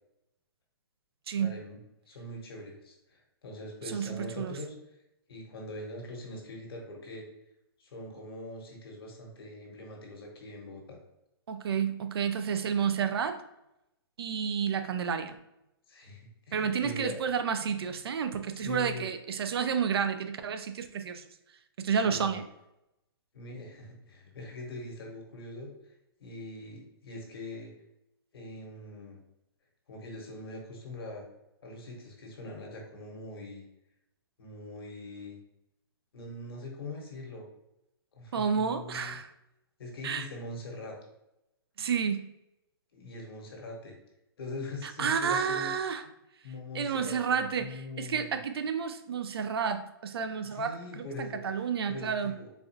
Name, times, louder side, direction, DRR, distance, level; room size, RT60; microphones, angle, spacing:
voice 1, 1.4-4.7 5.3-7.2 7.8-11.0 15.9-17.2 18.5-19.1 22.1-22.4 23.3-25.7 26.2-27.7 28.3-29.2 29.9-31.2 31.6-33.6 34.4-35.4 36.1-37.5 38.1-39.2 39.8-41.0 42.9-43.9 44.4-45.7 46.4-48.4 50.5-51.6 51.9-52.5, left 2 dB, 70° left, 0 dB, 1.2 m, -42 dB
voice 2, 3.9-4.6 11.5-13.4 14.2-15.4 16.5-21.3 21.8-22.4 38.3-39.3 40.0-40.3 41.8-42.2 44.8-46.0 46.7-52.3, right 7 dB, 75° right, 8 dB, 0.4 m, -30 dB
4.1 x 2.4 x 2.8 m, 0.86 s
hypercardioid pair, 160°, 13 cm